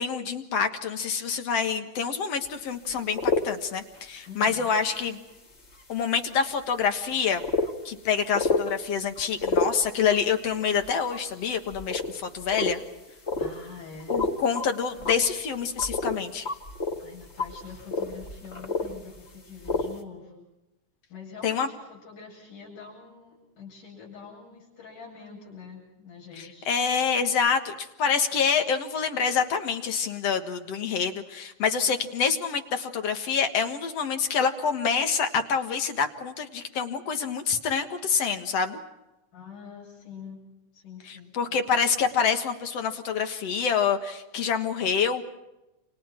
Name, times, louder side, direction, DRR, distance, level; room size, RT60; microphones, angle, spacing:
voice 1, 0.0-3.2 3.4-5.2 5.9-7.4 7.9-12.8 14.1-16.5 21.4-21.7 26.7-38.8 41.1-45.2, left 6 dB, 55° left, 7 dB, 2.4 m, -26 dB
sound 1, 2.4-2.5 2.9-3.5 4.0-4.2 4.8-4.9 5.7-5.8 6.3-6.4 7.0-7.1 7.4-7.7 8.3-8.7 9.2-10.2 10.6-11.2 11.7-12.1 12.4-12.8 13.3-13.7 14.0-14.7 15.0-16.2 16.5-19.3 19.6-19.9, left 3 dB, 30° left, 1.5 m, -29 dB
voice 2, 4.3-4.7 13.4-14.2 17.0-20.4 21.1-26.7 39.3-40.4 40.7-41.3, left 5 dB, 75° left, -2 dB, 9.7 m, -45 dB
29.5 x 28.0 x 4.5 m, 0.95 s
omnidirectional pair, 3.6 m